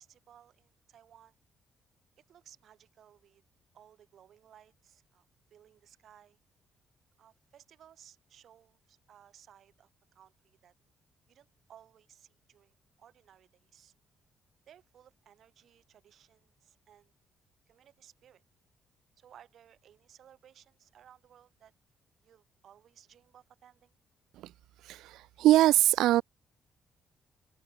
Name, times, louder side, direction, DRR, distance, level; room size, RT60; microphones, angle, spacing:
voice 1, 0.0-1.4 2.3-3.4 3.7-6.4 7.2-10.7 11.3-13.9 14.7-17.1 17.7-18.4 19.2-21.7 22.2-23.9, right 9 dB, 65° right, 4.9 m, -59 dB
voice 2, 24.8-26.2, right 15 dB, 90° right, 0.3 m, -23 dB
cardioid pair, 90°, 0 cm